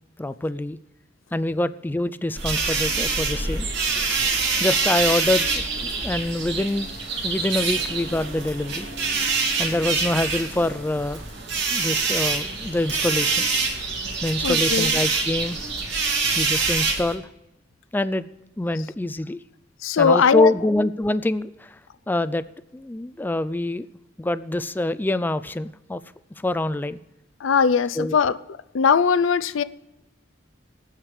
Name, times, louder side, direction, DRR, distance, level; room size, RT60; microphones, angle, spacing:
voice 1, 0.2-0.8 1.3-3.7 4.6-6.9 7.2-8.9 9.6-11.2 11.7-13.5 14.2-15.6 16.4-17.3 17.9-18.3 18.6-19.4 20.0-21.8 22.1-22.4 22.7-23.9 24.2-26.0 26.4-27.0 28.0-28.2, left 1 dB, 10° left, 0.3 m, -25 dB
sound 1, 2.4-17.1, right 4 dB, 60° right, 2.2 m, -25 dB
voice 2, 14.4-15.0 19.8-20.5 27.4-28.4 28.7-29.6, left 6 dB, 85° left, 0.5 m, -20 dB
22.0 x 9.0 x 3.2 m
head